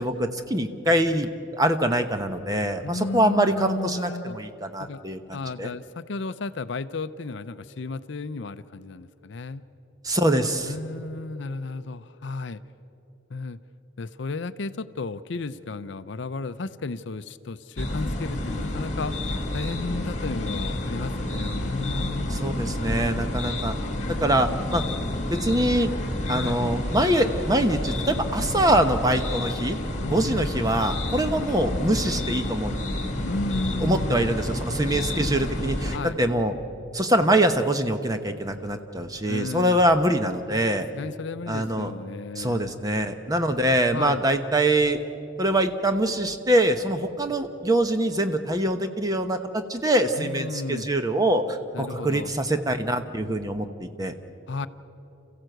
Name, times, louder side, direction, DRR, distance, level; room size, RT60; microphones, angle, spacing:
voice 1, 0.0-5.7 10.0-10.7 22.3-23.7 24.2-24.8 25.3-25.9 26.3-29.8 30.1-32.8 33.8-36.5 36.9-40.9 41.5-41.9 42.4-45.0 45.4-54.1, right 1 dB, 20° right, 7 dB, 0.9 m, -24 dB
voice 2, 2.8-4.4 4.8-5.0 5.3-9.6 10.6-12.6 13.3-13.6 14.0-19.1 19.5-22.4 26.3-26.6 30.0-30.5 33.2-34.2 35.9-36.2 39.3-39.8 40.7-42.7 43.9-44.2 50.2-50.9 51.7-52.3 54.5-54.7, left 3 dB, 60° left, 13 dB, 0.5 m, -33 dB
sound 1, 17.8-36.0, left 1 dB, 35° left, 1.9 m, -29 dB
28.0 x 15.0 x 7.9 m, 3.0 s
head